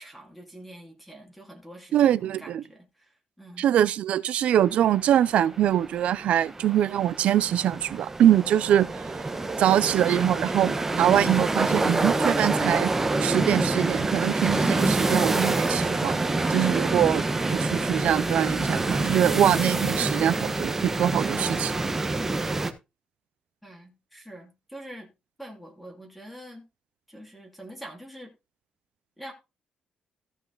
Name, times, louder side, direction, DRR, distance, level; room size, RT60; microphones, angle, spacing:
voice 1, 0.0-3.7 23.6-25.1 25.4-26.6 27.1-28.3 29.2-29.3, right 1 dB, ahead, 2.8 m, -45 dB
voice 2, 1.9-2.6 3.6-9.0 9.6-12.9 13.2-16.2 16.5-17.2 17.5-21.7, right 11 dB, 75° right, 0.6 m, -23 dB
sound 1, 4.6-22.7, right 2 dB, 15° right, 1.2 m, -27 dB
sound 2, 15.7-21.3, left 2 dB, 50° left, 6.2 m, -46 dB
14.5 x 5.6 x 4.0 m
cardioid pair, 145°, 2 cm